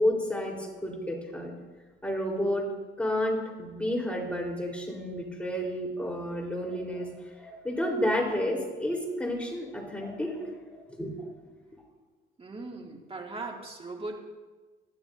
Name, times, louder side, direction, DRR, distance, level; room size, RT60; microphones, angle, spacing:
voice 1, 0.0-1.5 2.0-2.7 3.0-11.3, left 1 dB, 5° left, -2 dB, 4.1 m, -31 dB
voice 2, 12.4-14.2, right 3 dB, 30° right, 0 dB, 2.4 m, -39 dB
19.5 x 12.0 x 2.7 m, 1.3 s
cardioid pair, 90°, 20 cm